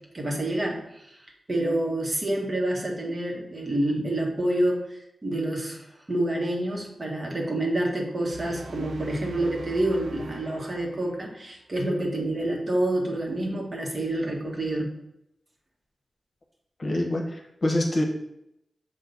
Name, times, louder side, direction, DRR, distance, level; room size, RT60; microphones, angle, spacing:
voice 1, 0.1-1.2 1.5-14.9, right 1 dB, 40° right, -1 dB, 1.5 m, -28 dB
sound 1, 8.3-11.5, right 3 dB, 85° right, 0.5 m, -43 dB
voice 2, 16.8-18.0, left 1 dB, 45° left, 1 dB, 1.1 m, -25 dB
6.5 x 2.8 x 5.4 m, 0.81 s
cardioid pair, 60°, 0 cm